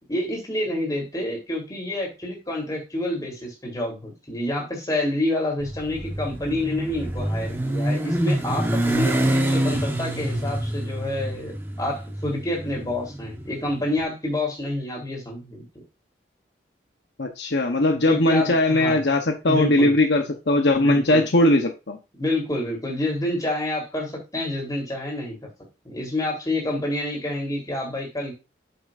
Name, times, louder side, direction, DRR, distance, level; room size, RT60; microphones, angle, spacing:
voice 1, 0.1-15.6 18.1-19.0 19.4-20.0 20.8-21.3 22.2-25.5 25.8-28.3, left 1 dB, 20° left, -1 dB, 3.8 m, -28 dB
Motorcycle, 5.6-13.8, right 1 dB, 10° right, 1.1 m, -26 dB
voice 2, 17.2-22.0, left 2 dB, 70° left, 4 dB, 1.0 m, -20 dB
8.0 x 7.8 x 2.6 m, 0.26 s
head